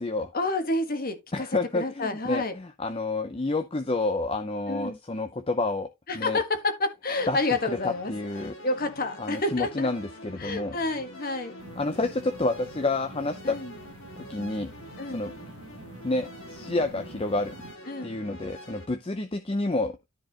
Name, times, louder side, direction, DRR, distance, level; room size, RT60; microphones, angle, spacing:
voice 1, 0.3-1.5 1.7-2.5 4.7-5.0 6.1-8.1 8.4-9.9 10.4-11.5 13.4-13.7 15.0-15.2 17.9-18.1, left 2 dB, 40° left, 1.5 m, -29 dB
voice 2, 1.3-5.9 6.1-6.4 7.3-8.5 9.2-10.8 11.8-13.6 14.2-14.7 15.1-15.3 16.0-17.5 18.0-20.0, left 2 dB, 25° left, 0.6 m, -29 dB
sound 1, 7.2-18.9, left 1 dB, 55° left, 1.9 m, -46 dB
sound 2, 11.6-17.8, right 3 dB, 85° right, 1.2 m, -47 dB
13.0 x 4.6 x 2.9 m
head